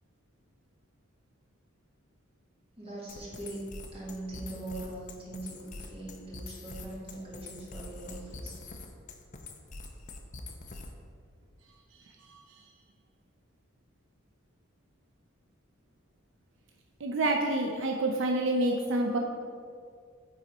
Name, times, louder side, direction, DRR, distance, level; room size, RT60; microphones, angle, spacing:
voice 1, 2.8-8.5, right 2 dB, 30° right, -6 dB, 1.8 m, -41 dB
sound 1, 3.1-11.1, left 3 dB, 40° left, 0.6 m, -44 dB
voice 2, 17.0-19.2, right 2 dB, 70° right, 2 dB, 0.5 m, -28 dB
9.4 x 4.0 x 4.1 m, 2.2 s
head